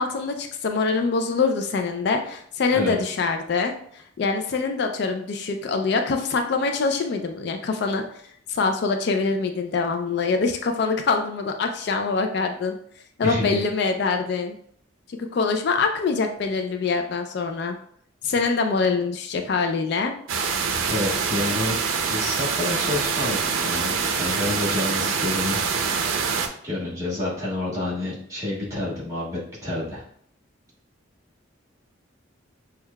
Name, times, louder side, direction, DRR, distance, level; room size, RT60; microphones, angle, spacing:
voice 1, 0.0-8.0 8.5-12.8 13.2-14.5 15.1-17.8 18.2-20.1, left 4 dB, 55° left, 5 dB, 0.3 m, -24 dB
voice 2, 13.2-13.6 18.2-18.3 20.9-25.6 26.6-30.0, left 2 dB, 15° right, -7 dB, 1.6 m, -29 dB
sound 1, 20.3-26.5, right 5 dB, 90° right, 0.5 m, -25 dB
6.2 x 2.3 x 2.2 m, 0.65 s
head